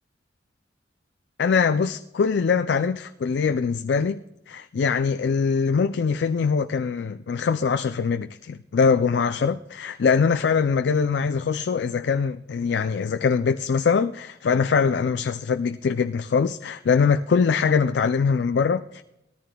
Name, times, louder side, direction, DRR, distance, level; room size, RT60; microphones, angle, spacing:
voice 1, 1.4-4.2 4.5-19.0, left 5 dB, 70° left, 0.4 m, -22 dB
19.0 x 14.0 x 2.3 m
head